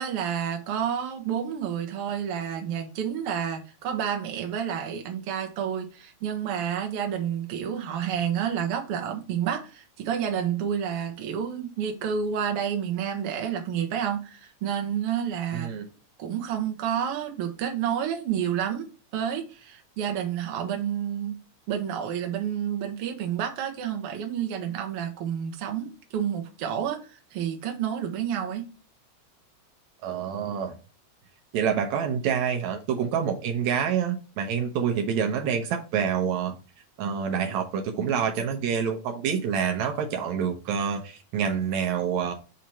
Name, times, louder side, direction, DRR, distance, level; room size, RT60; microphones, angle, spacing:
voice 1, 0.0-15.7 16.2-18.8 19.1-21.4 21.7-28.7, right 8 dB, 60° right, 1.6 m, -29 dB
voice 2, 15.5-15.9 30.0-30.8 31.5-36.6 37.0-42.3, right 7 dB, 80° right, 2.0 m, -27 dB
6.3 x 2.9 x 5.5 m
omnidirectional pair, 3.4 m